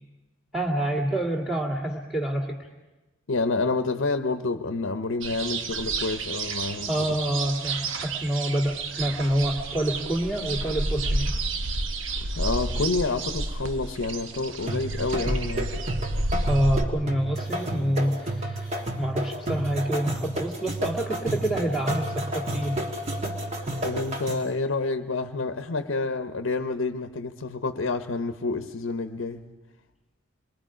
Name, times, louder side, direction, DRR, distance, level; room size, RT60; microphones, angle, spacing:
voice 1, 0.5-2.6 6.9-11.3 16.4-18.7 19.0-22.8, right 1 dB, ahead, 2.1 m, -27 dB
voice 2, 3.3-7.0 12.3-15.8 23.8-29.4, left 3 dB, 80° left, 0.8 m, -28 dB
sound 1, 5.2-16.8, right 2 dB, 80° right, 1.0 m, -30 dB
sound 2, 14.7-24.6, right 1 dB, 35° right, 1.6 m, -31 dB
27.5 x 21.0 x 5.0 m
head